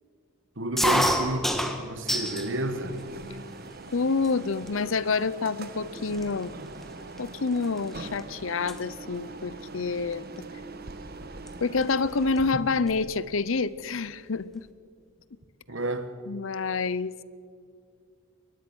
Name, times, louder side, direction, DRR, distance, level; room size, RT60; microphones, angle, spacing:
voice 1, 0.6-3.0 15.7-16.1, right 1 dB, 65° right, 1.6 m, -31 dB
sound 1, 0.8-2.5 2.9-3.6 4.2-4.3 4.6-5.0 5.6-5.7 5.9-8.2 8.5-8.8 10.1-10.4 11.5-11.6 11.8-11.9 12.2-13.1, equal, ahead, 1.5 m, -29 dB
sound 2, 2.1-12.5, right 3 dB, 45° right, 1.3 m, -42 dB
voice 2, 3.9-6.6 7.2-10.3 11.6-14.7 16.3-17.1, left 4 dB, 70° left, 0.7 m, -28 dB
23.0 x 19.5 x 6.3 m
head